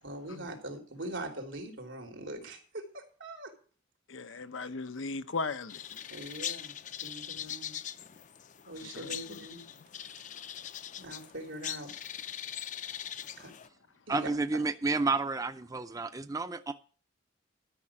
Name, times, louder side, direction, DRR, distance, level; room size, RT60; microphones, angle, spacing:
voice 1, 0.0-3.5 4.3-4.4 6.1-7.8 8.6-9.8 11.0-11.9 13.3-13.5 14.1-14.6, right 1 dB, 90° right, 3.2 m, -42 dB
voice 2, 4.1-6.0 8.8-9.4, left 4 dB, 90° left, 0.8 m, -38 dB
sound 1, 5.7-13.7, left 10 dB, 40° left, 0.5 m, -41 dB
voice 3, 14.1-16.7, right 3 dB, 20° right, 0.5 m, -30 dB
12.5 x 5.9 x 8.7 m
head